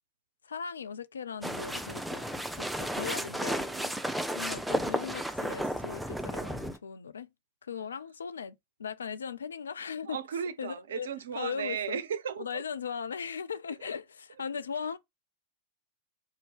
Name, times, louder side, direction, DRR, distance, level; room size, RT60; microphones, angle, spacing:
voice 1, 0.4-3.7 4.3-7.3 7.6-8.5 8.8-10.2 10.6-11.1 11.4-12.0 12.4-15.0, left 6 dB, 70° left, 0.3 m, -38 dB
sound 1, 1.4-6.8, equal, ahead, 0.5 m, -33 dB
voice 2, 2.8-4.3 7.7-8.0 10.0-12.6 13.8-13.9, right 8 dB, 65° right, 0.4 m, -38 dB
3.7 x 2.7 x 3.4 m
figure-of-eight pair, 90°, 0 cm